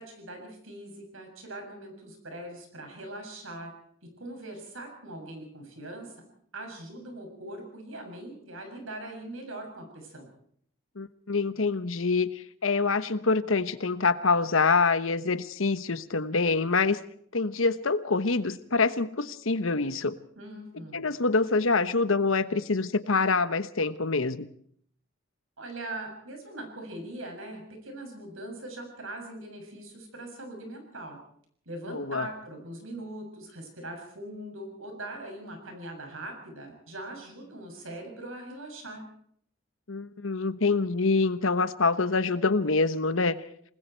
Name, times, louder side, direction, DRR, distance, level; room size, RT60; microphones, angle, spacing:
voice 1, 0.0-3.7 4.2-6.1 6.5-10.3 20.4-21.0 25.6-31.2 31.7-39.0, right 1 dB, 90° right, 3 dB, 7.2 m, -41 dB
voice 2, 11.0-17.0 17.3-20.2 20.9-24.4 31.9-32.3 39.9-43.4, left 4 dB, 85° left, 13 dB, 1.1 m, -26 dB
27.5 x 20.5 x 4.6 m, 0.63 s
head